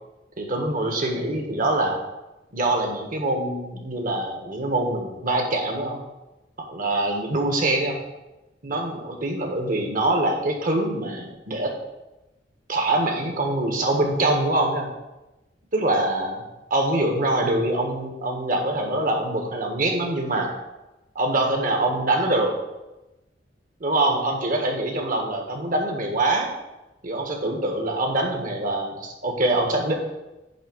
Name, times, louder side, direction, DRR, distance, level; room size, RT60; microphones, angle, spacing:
voice 1, 0.4-2.0 2.5-6.0 6.7-8.0 8.6-11.7 12.7-14.9 15.7-16.4 16.7-20.5 21.1-22.5 23.8-26.5 27.0-29.9, right 2 dB, 50° right, 2 dB, 1.6 m, -24 dB
10.0 x 3.6 x 7.2 m, 1.0 s
head